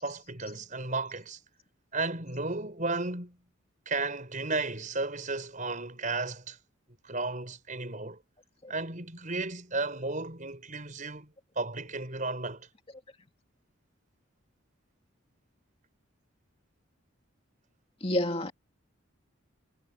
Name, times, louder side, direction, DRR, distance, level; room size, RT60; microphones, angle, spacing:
voice 1, 0.0-1.4 1.9-3.4 3.9-6.6 7.0-8.2 8.7-12.7, right 3 dB, 40° right, 5.7 m, -34 dB
voice 2, 18.0-18.5, left 1 dB, 30° left, 2.4 m, -29 dB
head